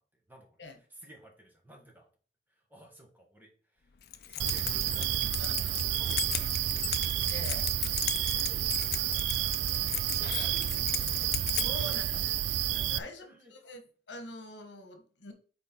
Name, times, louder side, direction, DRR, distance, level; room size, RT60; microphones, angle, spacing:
voice 1, 0.1-2.1 2.5-3.9 4.3-6.6 8.5-9.1 10.2-11.4 12.1-12.4 13.2-13.5, right 1 dB, 10° right, 0 dB, 1.4 m, -56 dB
Keys jangling, 4.0-12.0, left 13 dB, 55° left, 0.5 m, -37 dB
sound 1, 4.4-13.0, right 11 dB, 75° right, 0.3 m, -30 dB
voice 2, 5.4-5.8 7.3-7.7 11.6-12.3 12.7-15.3, left 1 dB, 75° left, 6 dB, 1.2 m, -44 dB
6.2 x 4.2 x 4.4 m, 0.40 s
head